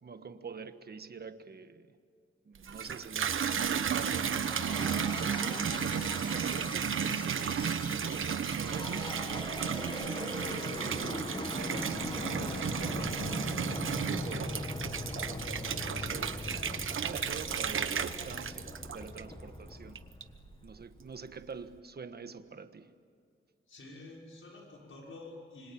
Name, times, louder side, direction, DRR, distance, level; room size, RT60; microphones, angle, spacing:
voice 1, 0.0-1.9 2.4-4.3 4.9-7.8 8.0-11.2 11.5-14.8 15.4-16.5 16.9-20.0 20.6-22.9, right 5 dB, 50° right, 10 dB, 1.4 m, -47 dB
Water tap faucet / Bathtub (filling or washing), 2.5-19.5 19.9-20.5, right 7 dB, 75° right, 1.1 m, -33 dB
sound 1, 4.2-20.9, left 2 dB, 20° left, 1.6 m, -40 dB
voice 2, 23.7-25.7, left 2 dB, 75° left, -2 dB, 5.9 m, -49 dB
26.5 x 25.5 x 8.7 m, 2.3 s
wide cardioid pair, 115°, 21 cm